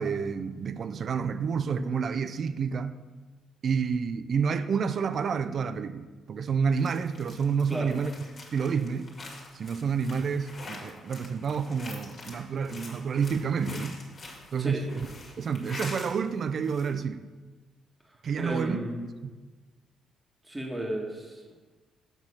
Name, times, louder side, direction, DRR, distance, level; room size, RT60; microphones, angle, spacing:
voice 1, 0.0-2.9 3.6-8.1 8.5-9.1 9.5-14.0 14.5-14.8 15.4-17.2 18.2-18.8 19.2-19.3, right 6 dB, 50° right, 0.4 m, -29 dB
sound 1, 6.8-16.2 16.5-16.9, left 2 dB, 45° left, 2.0 m, -45 dB
voice 2, 18.0-19.1 20.4-21.6, right 1 dB, 10° right, 1.6 m, -34 dB
6.7 x 6.1 x 5.6 m
cardioid pair, 90°, 0 cm